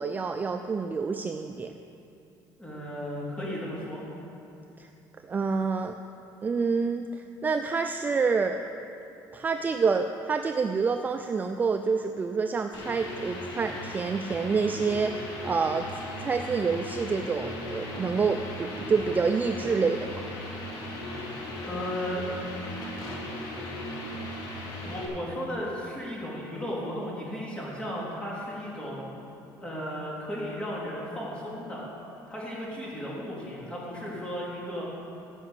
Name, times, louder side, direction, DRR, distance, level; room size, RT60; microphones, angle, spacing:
voice 1, 0.0-1.7 4.8-4.9 5.2-6.0 6.4-8.7 9.3-15.9 16.2-20.3, right 5 dB, 20° right, 6 dB, 0.4 m, -27 dB
voice 2, 2.6-4.0 21.6-22.3 24.8-29.0 29.6-31.8 32.3-34.8, equal, 10° left, -6 dB, 3.6 m, -35 dB
sound 1, 12.7-25.0, left 1 dB, 60° left, 2.5 m, -37 dB
15.0 x 5.9 x 8.2 m, 2.7 s
cardioid pair, 140°, 8 cm